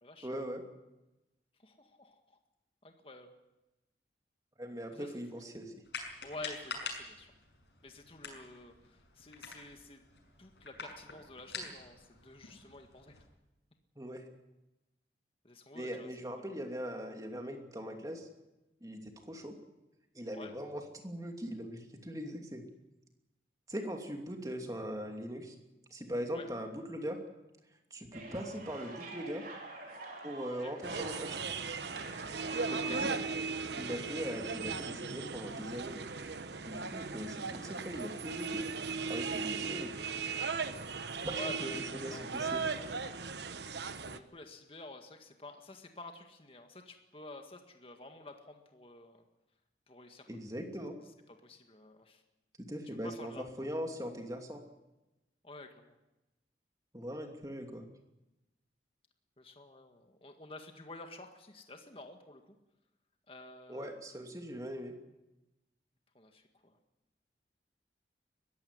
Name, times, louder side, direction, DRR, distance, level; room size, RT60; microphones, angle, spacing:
voice 1, 0.2-0.6 4.6-5.7 14.0-14.2 15.7-18.3 18.8-19.5 20.1-22.6 23.7-25.5 25.9-27.2 27.9-29.5 30.2-31.4 32.6-33.1 33.8-36.0 36.6-38.6 39.1-39.9 41.2-42.6 50.3-50.9 52.7-54.6 56.9-57.8 63.7-64.9, equal, 20° right, 4 dB, 2.7 m, -40 dB
voice 2, 1.6-2.4 2.8-3.3 4.9-5.4 6.2-7.3 7.8-10.0 10.4-13.2 15.4-16.1 20.3-20.5 26.3-26.5 30.6-30.7 32.7-33.0 41.0-42.3 44.0-49.3 49.9-50.3 51.4-52.2 53.0-53.7 55.4-56.0 59.4-62.4 63.3-63.9 66.1-66.8, left 2 dB, 30° left, 5 dB, 1.8 m, -50 dB
sound 1, 5.8-13.3, left 4 dB, 75° left, 6.3 m, -46 dB
sound 2, 28.1-33.2, right 2 dB, 50° right, 4.7 m, -47 dB
sound 3, 30.8-44.2, right 4 dB, 70° right, 1.1 m, -37 dB
21.5 x 15.5 x 9.7 m, 0.98 s
head